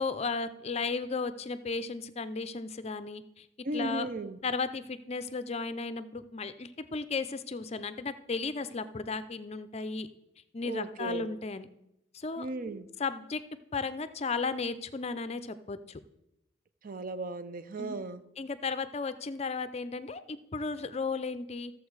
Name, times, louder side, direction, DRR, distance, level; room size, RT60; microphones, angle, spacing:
voice 1, 0.0-3.5 3.7-4.1 4.4-10.1 10.5-11.7 12.1-12.5 13.0-13.4 13.7-16.0 17.8-18.0 18.4-21.7, left 4 dB, 35° left, 12 dB, 0.5 m, -34 dB
voice 2, 3.6-4.4 10.6-11.3 12.4-12.9 16.8-18.2, right 2 dB, 45° right, 12 dB, 0.6 m, -36 dB
14.0 x 7.1 x 4.7 m, 0.86 s
head